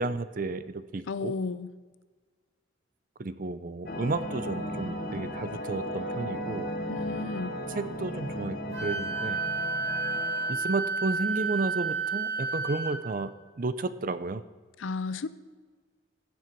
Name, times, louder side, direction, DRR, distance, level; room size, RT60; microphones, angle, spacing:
voice 1, 0.0-1.3 3.2-6.7 7.7-9.4 10.5-13.3 13.6-14.4, right 3 dB, 45° right, 0.5 m, -32 dB
voice 2, 1.1-1.7 6.9-7.5 14.8-15.3, left 4 dB, 80° left, 0.5 m, -33 dB
sound 1, 3.9-10.5, equal, 50° left, 1.2 m, -35 dB
Wind instrument woodwind instrument, 8.7-12.9, right 4 dB, 85° right, 4.3 m, -31 dB
16.0 x 7.3 x 4.6 m
head